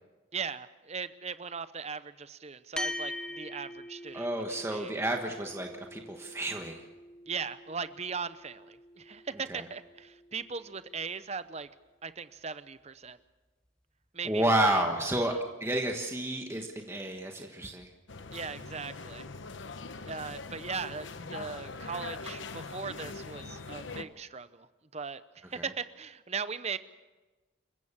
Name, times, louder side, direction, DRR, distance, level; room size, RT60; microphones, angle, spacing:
voice 1, 0.3-4.3 4.7-4.9 7.3-11.7 12.0-13.2 14.1-14.8 18.3-19.2 20.1-24.7 24.9-26.8, right 5 dB, 30° right, 13 dB, 0.7 m, -38 dB
sound 1, 2.8-11.4, left 1 dB, 5° left, 0.7 m, -43 dB
voice 2, 4.1-6.9 9.5-9.6 14.2-17.9 25.5-25.7, right 1 dB, 15° right, 2 dB, 1.4 m, -30 dB
sound 2, 18.1-24.0, left 3 dB, 65° left, 1.0 m, -42 dB
28.0 x 15.0 x 7.3 m, 1.2 s
head